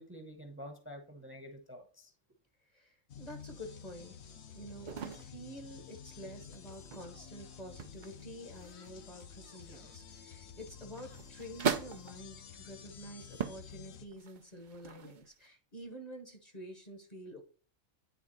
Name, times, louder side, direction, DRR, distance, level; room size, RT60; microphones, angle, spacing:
voice 1, 0.0-2.1, equal, 10° right, 0.9 m, -48 dB
voice 2, 2.7-4.2 4.5-17.4, equal, 35° left, 1.0 m, -49 dB
sound 1, 3.1-14.1, left 7 dB, 60° left, 1.0 m, -51 dB
sound 2, 4.9-5.4 6.4-7.4 7.8-8.2 8.5-10.2 10.8-12.3 12.9-13.0 13.3-13.7 14.1-15.5, right 6 dB, 50° right, 0.6 m, -39 dB
9.3 x 3.5 x 4.0 m
omnidirectional pair, 1.3 m